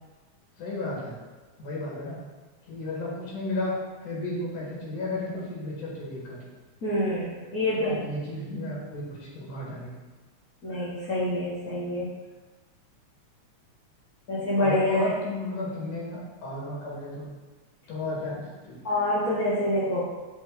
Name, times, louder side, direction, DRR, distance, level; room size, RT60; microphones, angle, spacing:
voice 1, 0.6-1.2 1.6-2.2 2.6-3.7 4.0-6.4 7.7-9.9 14.6-17.3 17.9-18.8, left 2 dB, 90° left, -5 dB, 3.2 m, -33 dB
voice 2, 6.8-8.0 10.6-12.1 14.3-15.1 18.8-20.1, left 1 dB, 70° left, -9 dB, 0.8 m, -26 dB
7.8 x 3.2 x 3.9 m, 1.2 s
omnidirectional pair, 3.4 m